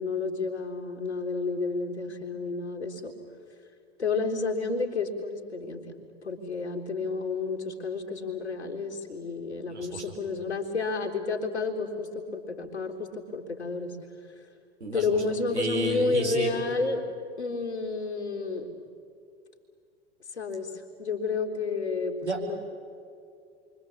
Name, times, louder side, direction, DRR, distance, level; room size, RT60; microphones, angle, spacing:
voice 1, 0.0-3.1 4.0-5.8 6.2-14.0 14.9-17.0 17.4-18.7 20.3-22.6, left 4 dB, 75° left, 1 dB, 3.6 m, -30 dB
voice 2, 9.7-10.1 14.8-15.0 15.5-16.6 22.2-22.4, right 1 dB, 80° right, 1 dB, 4.9 m, -31 dB
28.5 x 24.5 x 8.6 m, 2.4 s
figure-of-eight pair, 85°, 34 cm